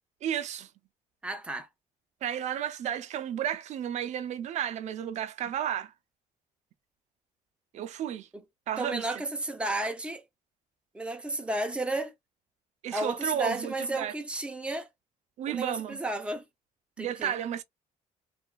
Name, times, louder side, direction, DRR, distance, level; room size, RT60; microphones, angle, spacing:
voice 1, 0.2-0.7 2.2-5.9 7.7-8.3 8.7-9.2 12.8-14.1 15.4-16.0 17.0-17.6, right 10 dB, 55° right, 0.5 m, -32 dB
voice 2, 1.2-1.7 8.3-8.4 8.8-10.2 10.9-12.1 12.9-14.9 15.5-16.4 17.0-17.3, right 2 dB, 5° right, 0.6 m, -32 dB
2.8 x 2.3 x 2.3 m
cardioid pair, 145°, 15 cm